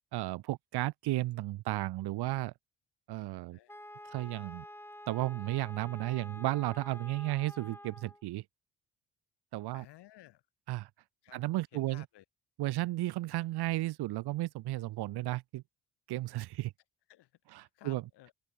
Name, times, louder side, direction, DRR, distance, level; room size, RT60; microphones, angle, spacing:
voice 1, 0.1-2.5 3.1-3.6 4.1-4.7 5.1-8.4 9.5-9.9 10.7-10.9 11.3-12.0 12.6-15.6 16.1-16.7 17.5-18.0, right 17 dB, 70° right, 0.7 m, -34 dB
Wind instrument woodwind instrument, 3.7-8.2, left 1 dB, 5° left, 2.8 m, -49 dB
voice 2, 9.7-10.4 11.2-12.2 17.1-18.3, left 14 dB, 80° left, 6.8 m, -56 dB
open air
supercardioid pair, 50°, 40 cm